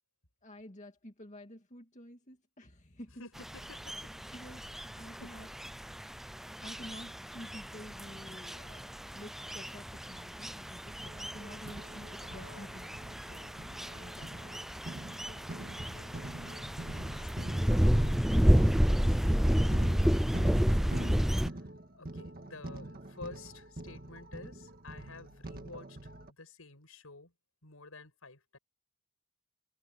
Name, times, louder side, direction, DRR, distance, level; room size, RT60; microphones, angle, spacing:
voice 1, 0.4-3.2 4.3-5.5 6.6-14.6, left 1 dB, 35° left, 2.3 m, -50 dB
voice 2, 3.2-4.2 5.2-5.5 12.2-12.8 15.6-17.7 19.3-20.0 21.5-27.3 27.6-28.6, left 3 dB, 80° left, 6.0 m, -52 dB
sound 1, 3.4-21.5, equal, ahead, 0.4 m, -31 dB
sound 2, 11.0-26.3, right 1 dB, 45° right, 1.8 m, -45 dB
head